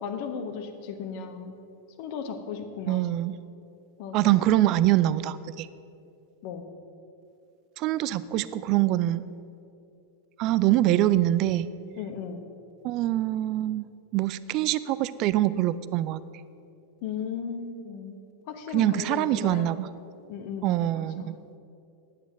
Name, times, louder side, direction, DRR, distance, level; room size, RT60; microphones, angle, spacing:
voice 1, 0.0-1.5 2.0-3.0 4.0-4.5 6.4-6.6 10.7-10.8 12.0-12.4 17.0-18.2 18.5-19.7 20.3-21.3, left 6 dB, 45° left, 7 dB, 1.1 m, -36 dB
voice 2, 2.9-3.4 4.1-5.7 7.8-9.2 10.4-11.7 12.8-13.9 14.1-16.2 18.7-19.9 20.6-21.3, right 14 dB, 40° right, 16 dB, 0.4 m, -24 dB
10.0 x 9.1 x 6.2 m, 2.6 s
figure-of-eight pair, 90°, 0 cm